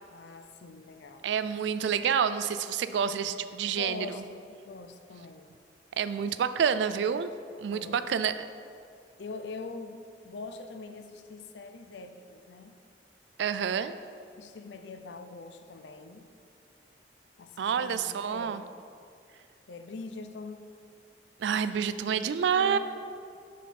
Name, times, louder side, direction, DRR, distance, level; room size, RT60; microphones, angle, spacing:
voice 1, 0.1-1.3 3.7-5.6 7.7-8.0 9.2-10.0 10.2-12.7 14.4-16.3 17.4-18.7 19.7-20.7 21.5-22.8, left 3 dB, 75° left, 8 dB, 0.5 m, -43 dB
voice 2, 1.2-4.2 6.0-7.3 7.6-8.4 13.4-13.9 17.6-18.6 21.4-22.8, right 7 dB, 75° right, 12 dB, 0.3 m, -28 dB
7.3 x 5.7 x 4.2 m, 2.3 s
head